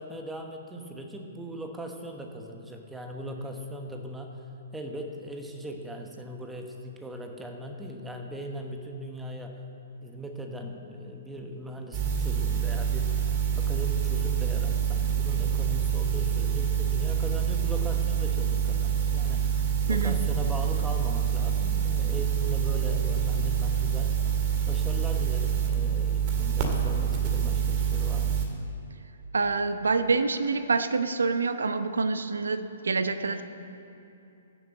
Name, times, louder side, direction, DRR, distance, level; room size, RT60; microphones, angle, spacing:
voice 1, 0.0-4.4 4.7-9.6 10.0-24.2 24.7-28.4, equal, 5° right, 3 dB, 1.2 m, -39 dB
sound 1, 11.9-28.4, right 7 dB, 40° right, 2.0 m, -26 dB
voice 2, 29.3-33.4, right 4 dB, 80° right, 11 dB, 0.8 m, -26 dB
14.5 x 7.3 x 7.8 m, 2.8 s
hypercardioid pair, 125°, 0 cm